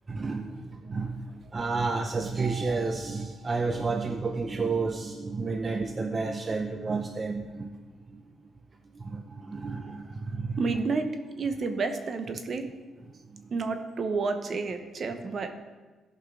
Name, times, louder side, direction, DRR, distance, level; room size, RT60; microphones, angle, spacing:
voice 1, 0.1-7.8 8.1-8.2 8.9-10.8 13.2-13.6, right 4 dB, 30° right, 4 dB, 0.6 m, -31 dB
voice 2, 10.6-11.1 11.4-12.7 13.5-15.5, right 4 dB, 50° right, 7 dB, 0.9 m, -30 dB
14.0 x 5.5 x 3.8 m, 1.3 s
cardioid pair, 90°, 0 cm